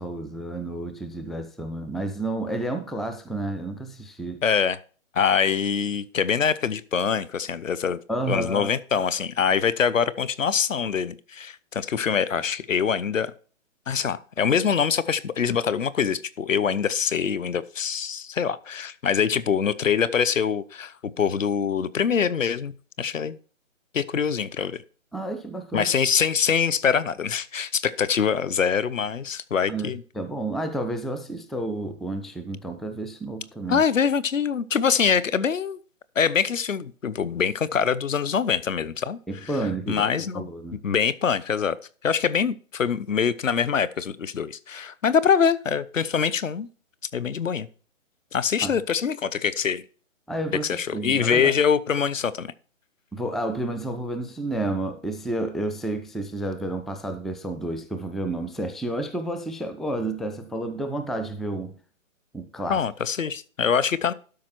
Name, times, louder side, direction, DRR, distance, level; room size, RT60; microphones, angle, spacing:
voice 1, 0.0-4.4 8.1-8.7 25.1-25.9 29.7-33.8 39.3-40.8 48.6-48.7 50.3-51.5 53.1-61.7 62.3-62.8, right 2 dB, ahead, 0.4 m, -30 dB
voice 2, 4.4-4.8 5.1-8.0 8.3-13.3 13.9-22.7 23.0-23.4 23.9-24.8 25.7-30.0 33.7-35.8 36.2-39.5 39.9-41.8 42.0-46.7 47.1-47.7 48.3-49.8 50.6-52.5 62.7-64.1, left 7 dB, 75° left, 0.9 m, -24 dB
12.5 x 5.3 x 4.5 m
hypercardioid pair, 180°, 39 cm